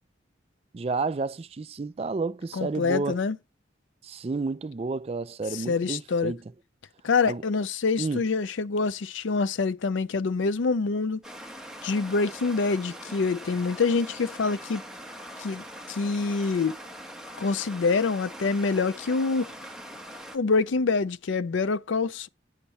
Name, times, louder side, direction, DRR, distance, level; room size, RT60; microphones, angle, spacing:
voice 1, 0.7-3.2 4.0-6.4 7.3-7.4 8.0-8.2, right 3 dB, 30° right, 0.4 m, -31 dB
voice 2, 2.5-3.4 5.5-6.3 7.0-11.2 11.8-14.8 15.4-16.8 17.4-19.5 20.3-22.3, left 4 dB, 80° left, 0.5 m, -26 dB
Stream, 11.2-20.4, equal, 5° right, 1.0 m, -42 dB
8.0 x 7.2 x 4.2 m
head